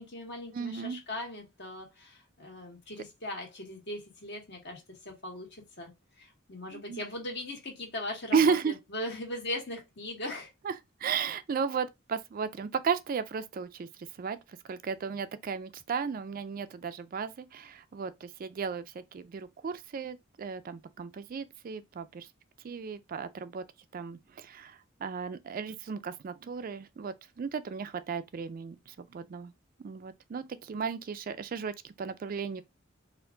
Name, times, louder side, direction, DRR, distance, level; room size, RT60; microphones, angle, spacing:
voice 1, 0.0-5.9 6.2-10.5, left 1 dB, 60° left, 1.7 m, -39 dB
voice 2, 0.5-1.0 6.7-7.0 8.3-8.7 10.6-10.7 11.0-22.3 22.6-23.6 23.9-29.5 29.8-32.6, right 6 dB, 45° right, 0.3 m, -34 dB
4.4 x 2.5 x 3.7 m
head